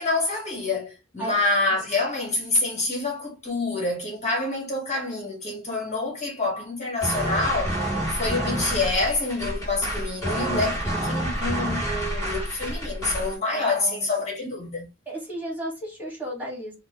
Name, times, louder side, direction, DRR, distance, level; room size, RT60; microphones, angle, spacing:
voice 1, 0.0-7.8 8.1-14.9, left 3 dB, 35° left, 1.5 m, -27 dB
sound 1, 7.0-13.4, right 1 dB, 15° left, 2.2 m, -28 dB
voice 2, 13.5-14.1 15.1-16.7, right 1 dB, 10° right, 1.8 m, -34 dB
5.9 x 2.2 x 3.0 m
head